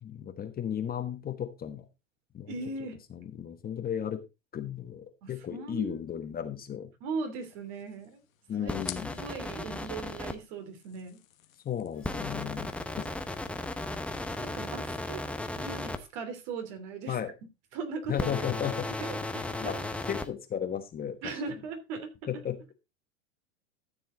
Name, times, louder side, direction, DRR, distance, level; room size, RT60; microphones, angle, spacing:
voice 1, 0.0-1.8 2.3-2.5 3.1-4.2 4.5-6.9 8.5-9.1 11.6-13.0 17.1-17.3 18.1-18.9 19.6-19.8 20.1-21.3 22.3-22.7, left 9 dB, 25° left, 1.3 m, -34 dB
voice 2, 2.5-3.0 5.2-6.0 7.0-8.2 8.6-8.7 9.1-11.2 14.4-15.2 15.6-17.2 17.7-19.7 21.2-22.4, right 4 dB, 55° right, 3.2 m, -39 dB
sound 1, 7.4-15.0, left 12 dB, 90° left, 1.3 m, -51 dB
sound 2, 8.7-10.3 12.0-16.0 18.1-20.3, left 2 dB, 5° left, 0.8 m, -35 dB
13.0 x 7.1 x 3.9 m
hypercardioid pair, 120°, 39 cm